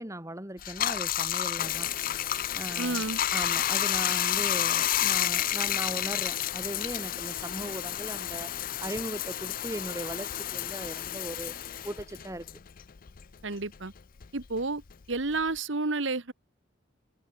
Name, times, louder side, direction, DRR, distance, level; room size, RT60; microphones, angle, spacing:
voice 1, 0.0-2.1 2.5-8.5 8.8-12.5, right 1 dB, 15° right, 3.5 m, -38 dB
Bathtub (filling or washing), 0.6-13.4 13.7-15.6, left 11 dB, 45° left, 0.5 m, -30 dB
voice 2, 2.8-3.2 13.4-13.9 14.3-14.8 15.1-16.3, right 3 dB, 70° right, 1.5 m, -30 dB
head